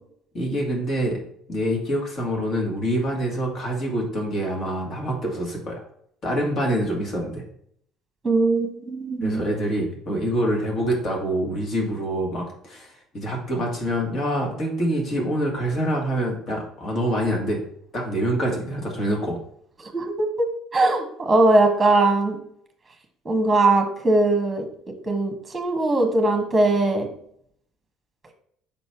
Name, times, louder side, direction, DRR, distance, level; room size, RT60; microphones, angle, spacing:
voice 1, 0.3-1.2 1.5-5.8 6.2-7.4 9.2-17.6 17.9-19.4, equal, 45° left, -1 dB, 2.3 m, -26 dB
voice 2, 8.2-9.4 19.8-22.4 23.2-24.7 25.1-27.1, right 2 dB, 20° right, 4 dB, 1.4 m, -20 dB
5.6 x 4.1 x 4.6 m, 0.67 s
figure-of-eight pair, 55°, 0 cm